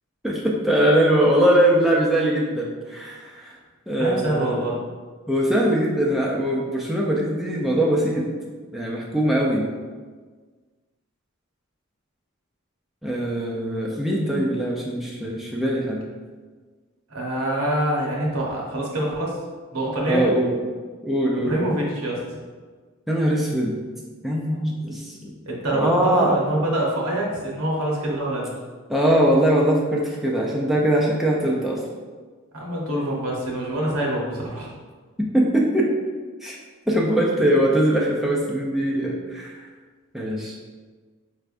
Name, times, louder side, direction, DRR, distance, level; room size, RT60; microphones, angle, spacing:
voice 1, 0.2-3.5 3.9-4.6 5.3-8.3 8.7-9.7 13.0-16.0 20.1-20.5 21.0-21.7 23.1-23.8 24.2-25.3 25.7-26.3 28.9-31.8 35.3-35.9 36.4-36.6 36.9-39.6 40.1-40.6, right 1 dB, ahead, -4 dB, 0.4 m, -21 dB
voice 2, 4.0-4.8 17.1-19.4 19.7-20.3 21.4-22.2 25.5-28.5 32.5-34.7, right 1 dB, 80° right, -3 dB, 1.1 m, -25 dB
4.5 x 3.3 x 2.5 m, 1.5 s
head